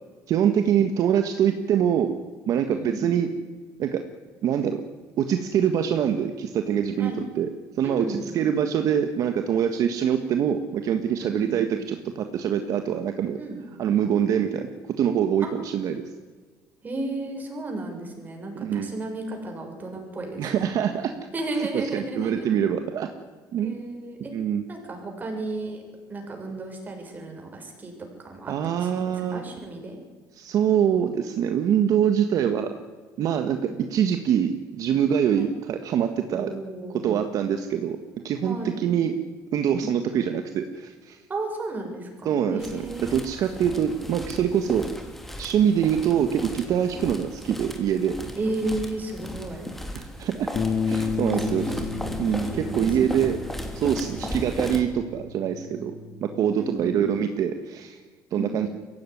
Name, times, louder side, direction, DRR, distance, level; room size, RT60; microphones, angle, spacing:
voice 1, 0.3-2.1 2.5-3.3 3.8-4.0 4.4-4.8 5.2-7.5 7.8-13.4 13.8-14.7 15.0-16.0 18.5-18.9 20.4-21.2 21.5-23.1 23.5-23.8 24.3-24.7 28.5-29.4 30.3-32.7 33.2-36.5 37.0-38.0 38.2-39.1 39.5-41.2 42.2-42.8 43.1-44.9 45.4-48.1 49.9-50.5 50.9-51.6 52.2-53.4 53.7-55.9 56.2-58.0 58.3-58.7, right 9 dB, 55° right, 7 dB, 1.6 m, -24 dB
voice 2, 2.7-3.0 7.0-7.3 7.8-8.4 11.2-11.6 13.4-13.6 15.4-15.5 16.8-20.5 21.3-22.5 23.6-24.3 24.7-25.8 26.1-27.9 28.2-30.0 33.6-33.8 35.3-35.5 36.3-37.2 38.4-38.8 39.7-39.9 41.3-43.3 44.7-44.9 46.9-47.1 48.4-49.7 51.4-53.2 55.7-55.9 56.5-57.0 58.3-58.6, right 2 dB, 25° right, 2 dB, 6.8 m, -34 dB
sound 1, 42.6-54.8, equal, 5° left, 3.2 m, -36 dB
Bass guitar, 50.6-56.8, left 5 dB, 45° left, 2.0 m, -32 dB
22.5 x 16.5 x 9.9 m, 1.5 s
cardioid pair, 125°, 7 cm